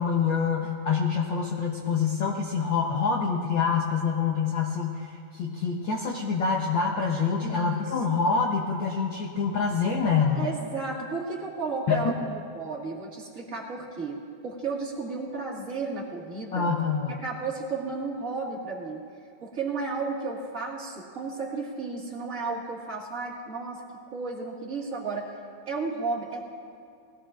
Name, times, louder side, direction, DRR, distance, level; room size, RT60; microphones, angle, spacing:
voice 1, 0.0-10.5 11.9-12.1 16.5-17.2, left 5 dB, 80° left, -1 dB, 1.0 m, -26 dB
voice 2, 7.4-7.8 10.3-16.7 17.1-19.0 19.4-25.3 25.7-26.5, right 4 dB, 30° right, -3 dB, 1.9 m, -33 dB
20.5 x 16.5 x 2.5 m, 2.5 s
omnidirectional pair, 3.4 m